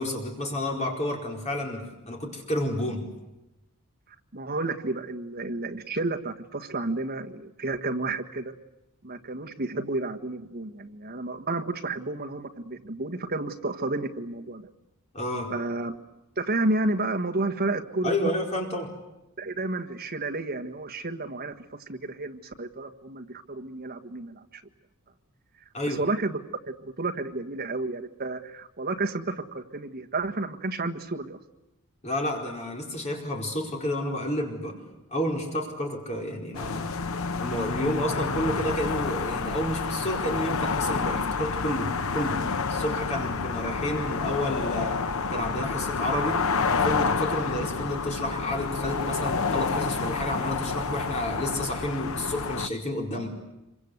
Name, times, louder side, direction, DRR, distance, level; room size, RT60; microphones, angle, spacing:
voice 1, 0.0-3.1 15.1-15.5 18.0-18.9 25.7-26.0 32.0-34.8 35.1-36.9 37.4-45.0 45.3-46.4 46.8-53.3, left 1 dB, 30° left, 1 dB, 4.6 m, -30 dB
voice 2, 4.3-8.5 9.0-14.7 15.5-15.9 16.4-18.1 19.4-24.6 25.8-26.4 26.8-31.4, right 2 dB, 45° right, 4 dB, 1.6 m, -31 dB
sound 1, 36.5-52.7, left 4 dB, 65° left, 0.9 m, -29 dB
26.5 x 24.5 x 8.2 m, 0.96 s
head